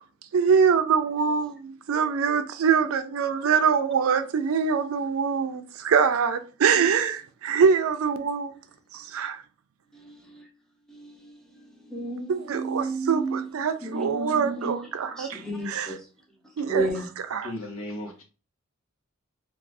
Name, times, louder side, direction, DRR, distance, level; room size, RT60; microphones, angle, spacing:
voice 1, 0.3-8.5 8.9-9.4 12.3-15.9 16.6-16.9 17.3-17.5, right 6 dB, 75° right, 0.4 m, -24 dB
voice 2, 9.9-10.5 10.9-13.4 13.8-14.8 15.1-16.0 16.7-17.1, right 2 dB, 5° left, 0.6 m, -32 dB
voice 3, 17.4-18.2, left 1 dB, 90° left, 0.9 m, -35 dB
2.5 x 2.3 x 3.3 m
head